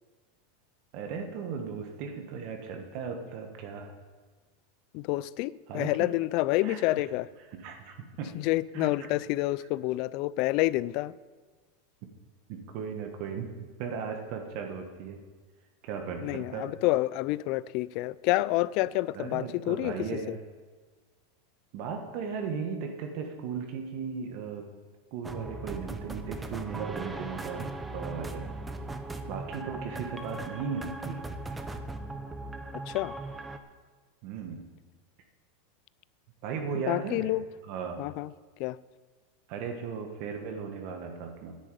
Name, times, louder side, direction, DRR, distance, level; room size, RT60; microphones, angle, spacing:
voice 1, 0.9-3.9 5.7-6.1 6.6-7.0 7.5-8.3 8.7-9.1 12.5-13.5 13.8-15.2 15.8-16.7 19.1-20.4 21.7-24.7 25.1-28.5 29.3-31.2 34.2-34.6 36.4-37.4 37.7-38.1 39.5-41.6, right 6 dB, 45° right, 1.5 m, -36 dB
voice 2, 4.9-7.3 8.3-11.1 16.2-19.9 20.3-20.4 32.9-33.2 36.9-37.5 38.0-38.3 38.6-38.8, left 18 dB, 45° left, 0.4 m, -28 dB
sound 1, 25.2-33.6, right 2 dB, 10° right, 0.8 m, -38 dB
10.5 x 8.1 x 9.2 m
supercardioid pair, 160°, 0 cm